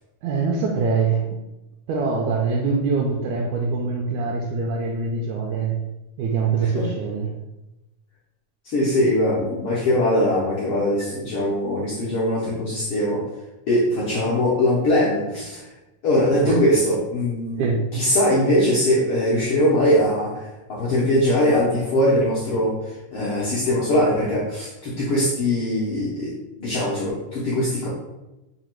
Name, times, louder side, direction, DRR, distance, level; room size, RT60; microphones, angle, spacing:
voice 1, 0.2-1.3 1.9-5.8 6.2-7.3 16.4-16.6 17.6-17.9, right 4 dB, 80° right, 0 dB, 1.8 m, -24 dB
voice 2, 8.6-13.2 13.7-15.7 16.0-17.6 17.9-27.9, left 1 dB, 70° left, -7 dB, 1.3 m, -21 dB
5.0 x 2.3 x 4.4 m, 0.99 s
omnidirectional pair, 3.6 m